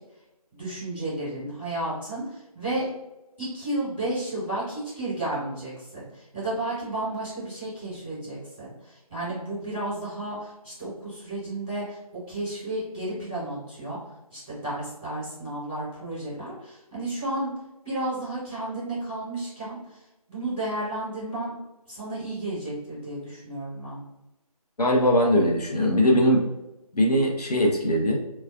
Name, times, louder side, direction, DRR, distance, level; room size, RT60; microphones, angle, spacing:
voice 1, 0.5-2.9 3.4-14.0 14.3-17.5 17.8-20.0 20.3-21.5 21.9-24.0, right 1 dB, ahead, -27 dB, 0.5 m, -32 dB
voice 2, 24.8-26.5 26.9-28.2, equal, 80° left, -1 dB, 0.9 m, -21 dB
3.3 x 2.3 x 2.3 m, 0.97 s
figure-of-eight pair, 165°, 20 cm